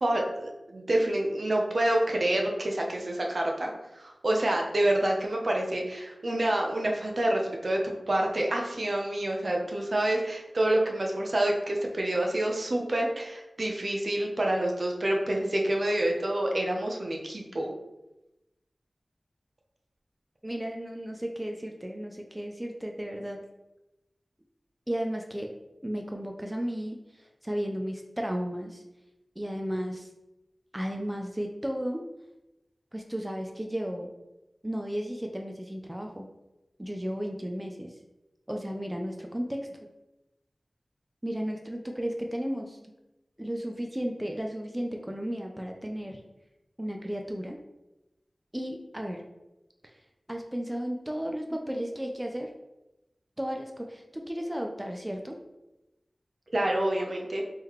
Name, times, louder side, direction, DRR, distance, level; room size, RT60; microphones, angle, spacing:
voice 1, 0.0-17.7 56.5-57.4, right 1 dB, 60° right, 0 dB, 0.7 m, -27 dB
voice 2, 20.4-23.5 24.9-25.5 25.8-28.8 29.4-30.1 30.7-32.0 32.9-34.1 34.6-36.3 36.8-37.9 38.5-39.9 41.2-42.8 43.4-46.2 46.8-47.6 48.5-49.2 50.3-52.5 53.4-55.4, equal, 15° right, 2 dB, 0.4 m, -34 dB
3.7 x 3.2 x 3.0 m, 0.96 s
wide cardioid pair, 60°, 0 cm